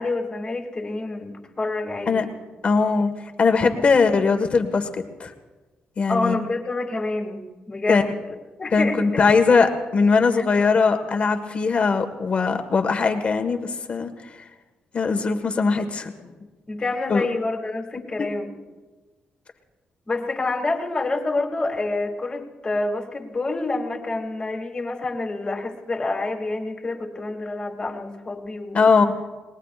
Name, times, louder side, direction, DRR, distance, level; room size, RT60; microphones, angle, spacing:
voice 1, 0.0-2.3 3.8-3.9 6.1-8.1 8.6-9.2 16.7-18.5 20.1-28.9, left 2 dB, 25° left, 2 dB, 2.5 m, -27 dB
voice 2, 2.6-5.3 6.0-6.4 7.9-8.0 8.7-14.4 14.9-16.3 17.1-17.3 28.7-29.1, left 4 dB, 45° left, 6 dB, 1.6 m, -20 dB
28.5 x 20.0 x 2.5 m, 1.2 s
cardioid pair, 105°, 3 cm